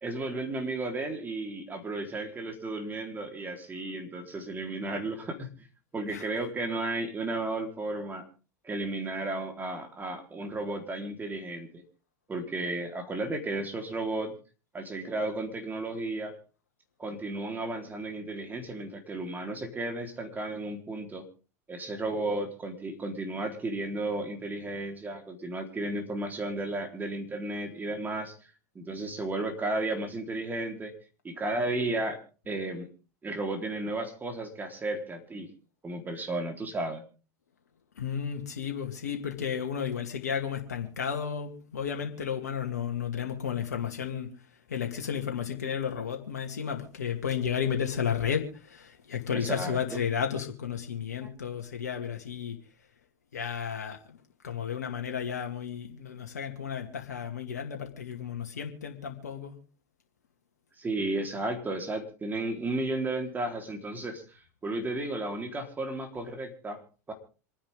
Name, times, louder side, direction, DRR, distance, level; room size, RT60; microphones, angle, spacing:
voice 1, 0.0-5.7 5.9-8.2 8.6-11.7 12.3-14.3 14.7-16.3 17.0-21.2 21.7-28.3 28.7-30.9 31.2-32.2 32.5-32.9 33.2-35.5 35.8-37.0 49.3-50.0 51.2-51.3 60.8-66.8 67.1-67.2, right 2 dB, 20° right, 4.0 m, -33 dB
voice 2, 38.0-44.3 44.7-52.6 53.3-54.2 54.4-59.6, left 7 dB, 85° left, 2.2 m, -33 dB
26.5 x 10.0 x 3.7 m
hypercardioid pair, 90°, 9 cm